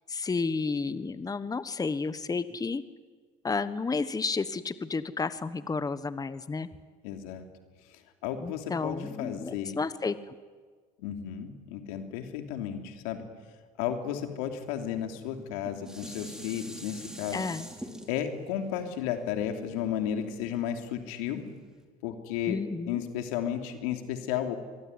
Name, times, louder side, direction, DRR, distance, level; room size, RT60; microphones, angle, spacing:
voice 1, 0.1-2.8 3.4-6.7 8.4-10.1 17.3-17.7 22.5-23.0, left 4 dB, 20° left, 14 dB, 1.2 m, -31 dB
voice 2, 7.0-7.4 8.2-9.8 11.0-13.2 13.8-17.5 18.1-21.4 22.0-24.6, left 9 dB, 85° left, 5 dB, 3.1 m, -33 dB
Dishes pots and pans, 15.3-20.5 21.1-21.2, equal, 5° right, 5.1 m, -45 dB
24.5 x 23.5 x 9.8 m, 1.5 s
supercardioid pair, 85°, 18 cm